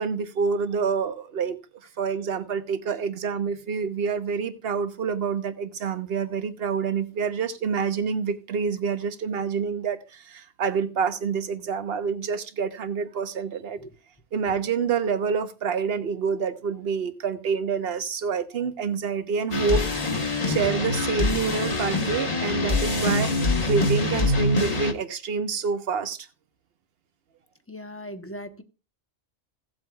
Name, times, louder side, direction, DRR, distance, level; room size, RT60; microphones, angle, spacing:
voice 1, 0.0-1.6 2.0-13.8 14.3-19.9 20.5-23.4 23.7-26.3, right 6 dB, 60° right, 1.1 m, -27 dB
sound 1, 19.5-24.9, left 2 dB, 35° left, 1.2 m, -24 dB
voice 2, 27.7-28.6, equal, 15° left, 0.8 m, -38 dB
17.0 x 7.9 x 2.3 m
omnidirectional pair, 1.2 m